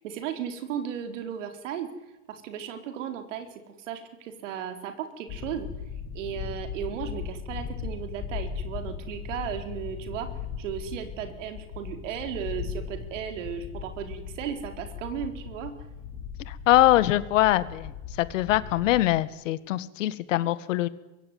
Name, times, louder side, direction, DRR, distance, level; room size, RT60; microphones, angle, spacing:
voice 1, 0.0-1.9 2.3-5.7 6.1-10.3 10.6-15.7, right 9 dB, 60° right, 6 dB, 4.3 m, -35 dB
sound 1, 5.3-19.0, left 7 dB, 30° left, 6.4 m, -38 dB
voice 2, 16.5-17.9 18.2-20.9, left 15 dB, 65° left, 15 dB, 1.8 m, -23 dB
24.0 x 22.5 x 9.4 m, 1.0 s
supercardioid pair, 175°, 41 cm